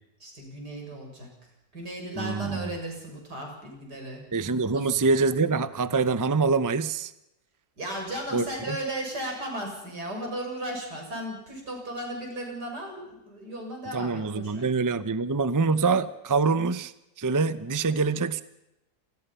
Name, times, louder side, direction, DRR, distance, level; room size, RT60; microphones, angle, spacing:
voice 1, 0.2-1.3 1.7-4.2 4.6-4.9 7.8-14.7, right 1 dB, 85° right, 1 dB, 7.5 m, -35 dB
voice 2, 2.2-2.7 4.3-7.1 8.3-8.8 13.9-18.4, right 4 dB, 20° right, 14 dB, 0.5 m, -25 dB
27.5 x 20.5 x 5.7 m, 0.89 s
omnidirectional pair, 1.7 m